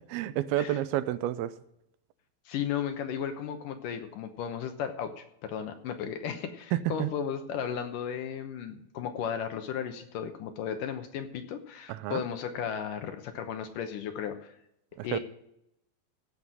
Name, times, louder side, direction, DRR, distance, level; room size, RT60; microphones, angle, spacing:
voice 1, 0.1-1.5 6.7-7.1 11.9-12.2 15.0-15.2, right 13 dB, 85° right, 14 dB, 2.5 m, -30 dB
voice 2, 2.5-14.5 15.0-15.2, left 8 dB, 70° left, 7 dB, 2.3 m, -35 dB
16.0 x 6.0 x 7.4 m, 0.79 s
omnidirectional pair, 4.4 m